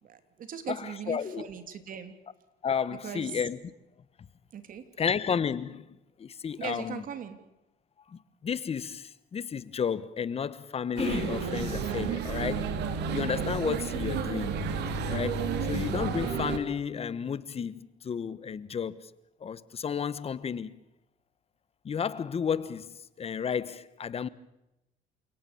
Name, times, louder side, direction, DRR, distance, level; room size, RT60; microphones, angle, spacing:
voice 1, 0.0-2.1 3.0-3.4 4.5-4.8 6.6-7.4 14.0-14.1, right 8 dB, 55° right, 3.3 m, -39 dB
voice 2, 0.7-1.5 2.6-3.6 5.0-7.0 8.1-12.7 13.1-14.5 15.1-19.1 19.4-20.8 21.8-24.3, left 7 dB, 35° left, 1.2 m, -32 dB
sound 1, 11.0-16.6, right 5 dB, 80° right, 3.0 m, -31 dB
29.0 x 18.0 x 7.1 m
cardioid pair, 110°, 17 cm